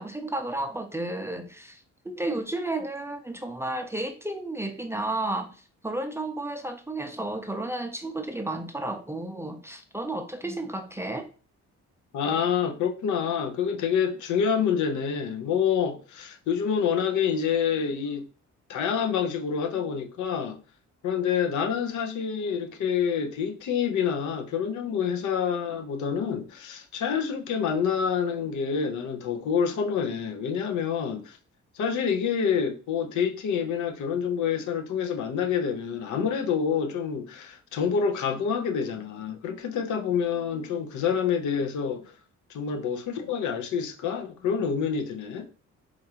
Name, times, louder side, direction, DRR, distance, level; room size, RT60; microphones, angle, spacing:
voice 1, 0.0-5.6 5.8-11.3, right 2 dB, 10° right, 0.4 m, -32 dB
voice 2, 12.1-18.3 18.7-20.6 21.0-31.4 31.7-42.1 42.5-45.5, left 7 dB, 75° left, 0.7 m, -27 dB
4.5 x 2.4 x 2.8 m
cardioid pair, 90°, 30 cm